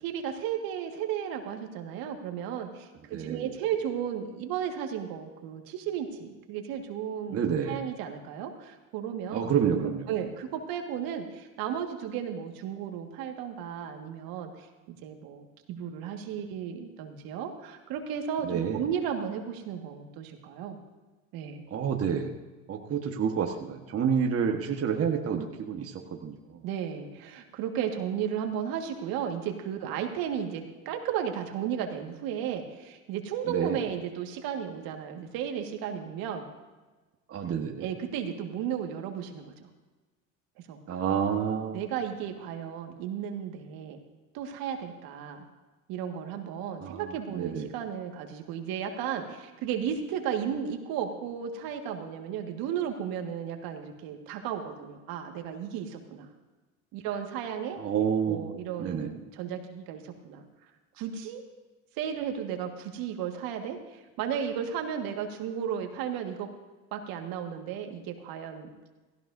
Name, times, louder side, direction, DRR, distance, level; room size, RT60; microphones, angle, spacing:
voice 1, 0.0-9.5 9.8-14.7 15.0-20.8 21.3-21.7 26.6-36.5 37.8-39.5 40.7-40.8 41.7-44.0 44.3-45.5 45.9-56.3 56.9-57.8 58.3-60.4 61.0-61.4 62.0-66.5 66.9-68.7, right 8 dB, 60° right, 4 dB, 1.8 m, -34 dB
voice 2, 3.1-3.5 7.3-7.8 9.3-10.1 18.4-18.8 21.7-22.3 22.7-25.9 26.2-26.4 33.5-33.8 37.3-37.9 40.9-41.8 46.8-47.7 57.8-58.5 58.8-59.1, right 7 dB, 35° right, 2 dB, 1.4 m, -28 dB
17.0 x 15.5 x 2.7 m, 1.2 s
hypercardioid pair, 90°, 39 cm